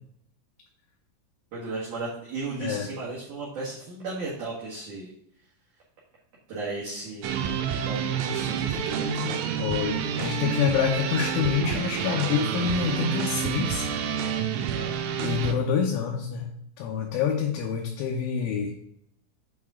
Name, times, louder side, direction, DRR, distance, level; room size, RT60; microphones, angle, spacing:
voice 1, 1.5-5.1 6.5-7.5 7.8-9.4 14.7-15.0, right 3 dB, 60° right, -7 dB, 2.1 m, -35 dB
sound 1, 7.2-15.5, right 7 dB, 90° right, 3.3 m, -28 dB
voice 2, 9.6-13.9 15.2-16.5 16.8-18.7, left 7 dB, 75° left, 0 dB, 3.1 m, -27 dB
8.4 x 5.5 x 3.6 m, 0.72 s
omnidirectional pair, 6.0 m